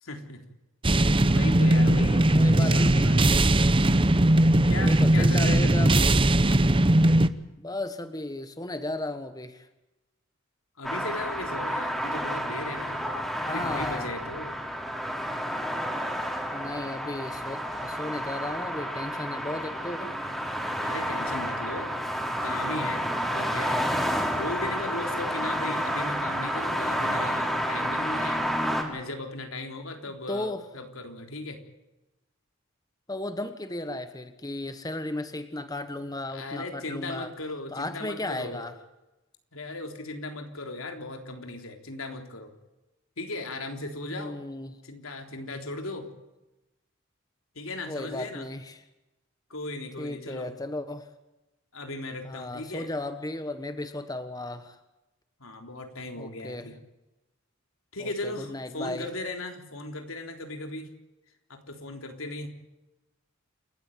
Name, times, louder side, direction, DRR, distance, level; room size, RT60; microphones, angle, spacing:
voice 1, 0.0-0.4 1.0-3.3 4.7-6.0 10.8-13.1 13.5-14.6 20.8-22.0 22.4-28.4 28.9-31.6 36.3-38.7 39.5-42.5 43.2-44.4 44.8-46.1 47.6-48.5 49.5-50.5 51.7-52.9 55.4-56.7 57.9-60.9 61.5-62.5, left 2 dB, 90° left, 4 dB, 3.8 m, -37 dB
sound 1, 0.8-7.3, right 1 dB, 25° right, 0.9 m, -20 dB
voice 2, 2.3-3.3 4.8-6.1 7.6-9.7 13.4-14.1 16.5-20.2 30.1-30.6 33.1-37.3 37.7-38.7 44.1-44.7 47.9-48.8 50.0-51.1 52.2-54.8 56.2-56.7 58.0-59.0, left 2 dB, 20° left, 10 dB, 1.3 m, -35 dB
sound 2, 10.8-28.8, equal, ahead, 4.0 m, -30 dB
28.5 x 14.0 x 9.2 m, 0.98 s
head